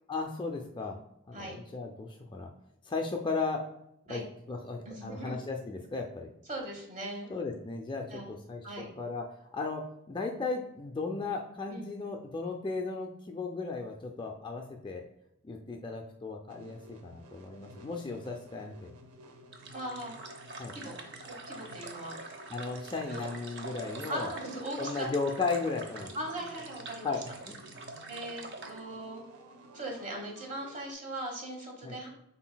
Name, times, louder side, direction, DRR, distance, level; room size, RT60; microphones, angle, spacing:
voice 1, 0.1-1.0 1.3-2.5 2.8-3.6 4.1-4.2 4.5-6.3 7.3-9.2 9.5-9.8 10.1-15.0 15.4-18.9 20.6-20.7 22.5-24.3 24.8-26.1 27.0-27.2 27.5-27.6 31.8-32.0, left 4 dB, 20° left, 2 dB, 0.3 m, -35 dB
voice 2, 4.8-5.4 6.5-7.3 8.1-8.3 8.6-8.9 11.6-11.8 19.7-20.1 20.7-20.9 21.2-22.2 23.1-23.2 24.1-25.1 26.1-27.1 28.1-29.2 29.7-32.1, right 1 dB, 35° right, 0 dB, 1.2 m, -39 dB
sound 1, 16.5-30.9, equal, 90° right, 0.6 m, -53 dB
sound 2, 19.5-28.8, right 3 dB, 50° right, 0.6 m, -45 dB
5.8 x 4.0 x 2.2 m, 0.84 s
head